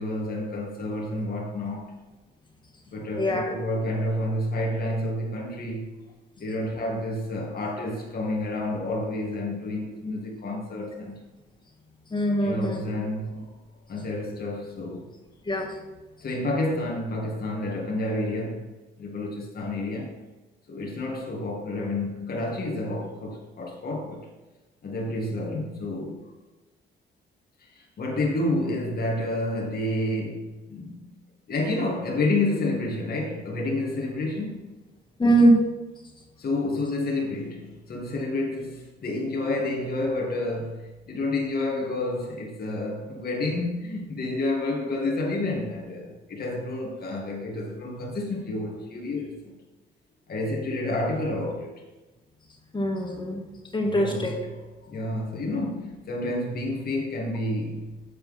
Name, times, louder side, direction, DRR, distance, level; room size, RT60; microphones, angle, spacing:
voice 1, 0.0-2.0 2.9-5.8 6.4-11.2 12.4-13.5 13.9-15.1 16.2-18.7 19.0-20.1 20.7-24.3 24.8-26.2 27.6-31.1 31.5-34.7 36.4-49.6 50.3-51.8 53.8-54.3 54.8-57.9, left 2 dB, 50° left, 2.0 m, -29 dB
voice 2, 3.2-3.5 12.1-12.8 15.5-15.7 35.2-35.6 52.7-53.4 53.7-54.3, right 1 dB, 25° left, 1.8 m, -22 dB
8.2 x 4.4 x 5.5 m
cardioid pair, 90°, 20 cm